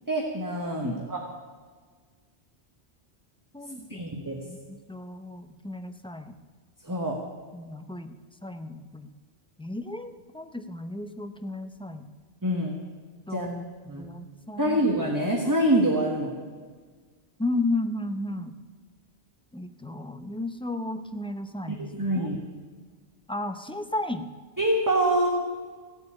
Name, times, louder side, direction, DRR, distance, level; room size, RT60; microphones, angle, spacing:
voice 1, 0.1-1.2 3.9-4.4 6.9-7.2 12.4-12.8 13.3-13.5 13.9-14.0 14.6-16.3 21.7-22.4 24.6-25.3, right 1 dB, 15° right, 0 dB, 1.4 m, -25 dB
voice 2, 3.5-4.1 4.4-6.4 7.5-8.1 8.4-9.1 9.6-12.1 13.3-14.8 17.4-18.5 19.5-22.3 23.3-24.3, left 2 dB, 5° left, 8 dB, 0.6 m, -34 dB
16.0 x 8.0 x 8.9 m, 1.5 s
omnidirectional pair, 1.2 m